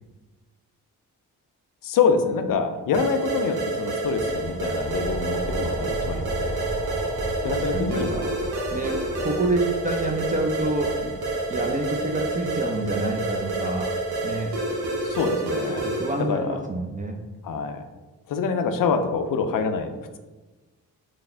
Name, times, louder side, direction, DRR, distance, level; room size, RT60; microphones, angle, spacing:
voice 1, 1.8-6.7 7.4-8.1 15.0-15.8 16.3-16.6 17.4-17.8 18.3-19.9, left 5 dB, 55° left, 8 dB, 0.5 m, -25 dB
sound 1, 2.9-16.3, right 2 dB, 65° right, 0.9 m, -29 dB
sound 2, 3.8-15.0, right 1 dB, 5° right, 0.9 m, -36 dB
voice 2, 7.4-9.0 9.2-11.1 11.5-13.9 14.2-14.5 15.7-17.2, right 2 dB, 20° right, 1 dB, 0.4 m, -28 dB
3.4 x 2.0 x 3.2 m, 1.2 s
supercardioid pair, 45°, 41 cm